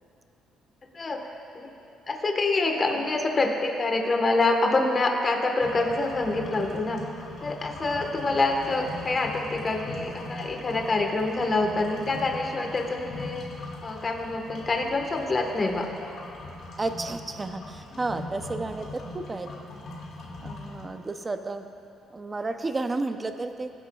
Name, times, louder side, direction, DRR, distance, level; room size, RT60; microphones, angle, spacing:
voice 1, 2.1-7.0 7.4-13.4 13.8-15.9, left 2 dB, 30° left, 2 dB, 1.3 m, -26 dB
sound 1, 5.6-20.8, left 2 dB, 60° left, 2.2 m, -41 dB
voice 2, 16.8-19.5 20.4-21.6 22.1-23.7, right 3 dB, 20° right, 7 dB, 0.6 m, -32 dB
23.5 x 11.0 x 2.4 m, 2.6 s
cardioid pair, 135°, 0 cm